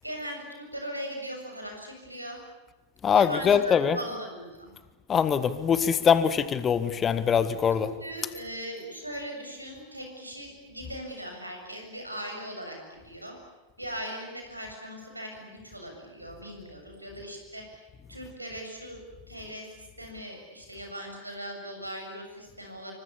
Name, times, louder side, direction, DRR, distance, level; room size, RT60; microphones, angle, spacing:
voice 1, 0.0-2.4 3.1-4.7 7.6-13.4 13.8-17.8 18.1-19.0 19.3-22.9, equal, 85° right, 3 dB, 7.5 m, -39 dB
voice 2, 3.0-4.0 5.1-7.9, left 7 dB, 25° left, 13 dB, 1.6 m, -23 dB
27.5 x 24.5 x 8.5 m, 1.1 s
figure-of-eight pair, 90°, 0 cm